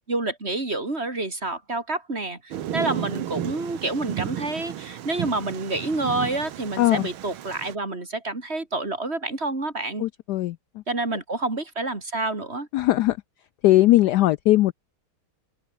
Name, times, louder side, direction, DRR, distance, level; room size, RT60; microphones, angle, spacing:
voice 1, 0.0-10.1 10.9-12.7, right 2 dB, 30° right, 3.6 m, -28 dB
Thunder, 2.5-7.7, right 11 dB, 80° right, 2.0 m, -33 dB
voice 2, 10.0-10.6 12.7-13.2 13.6-14.7, left 15 dB, 80° left, 0.9 m, -19 dB
open air
omnidirectional pair, 2.3 m